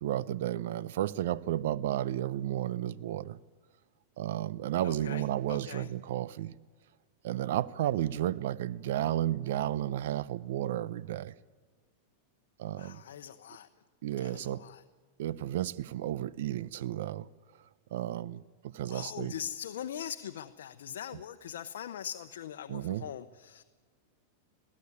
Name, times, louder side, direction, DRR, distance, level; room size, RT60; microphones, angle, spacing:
voice 1, 0.0-3.4 4.2-6.5 7.2-11.3 12.6-13.0 14.0-14.6 15.2-17.3 17.9-19.3 22.7-23.0, right 12 dB, 70° right, 0.7 m, -32 dB
voice 2, 4.8-5.9 12.8-13.7 14.2-14.8 18.9-23.6, left 9 dB, 80° left, 0.9 m, -41 dB
20.5 x 15.0 x 9.7 m
supercardioid pair, 140°, 0 cm